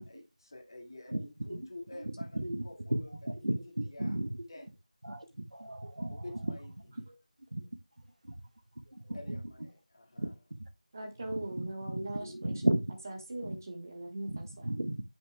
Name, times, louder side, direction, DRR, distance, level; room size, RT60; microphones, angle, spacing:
voice 1, 0.0-3.1 3.8-4.2 4.5-4.7 6.1-6.7 9.1-10.3, left 2 dB, 35° left, 2.0 m, -49 dB
voice 2, 2.0-2.6 2.9-4.4 5.0-6.5 6.9-7.0 7.5-7.6 8.2-8.3 8.9-9.4 10.2-10.3 10.6-10.7 11.3-12.8 13.4-13.6 14.2-15.0, right 1 dB, 65° right, 1.3 m, -35 dB
voice 3, 10.9-12.5 13.0-14.7, right 1 dB, 25° right, 1.3 m, -40 dB
9.0 x 7.9 x 2.2 m
figure-of-eight pair, 170°, 4 cm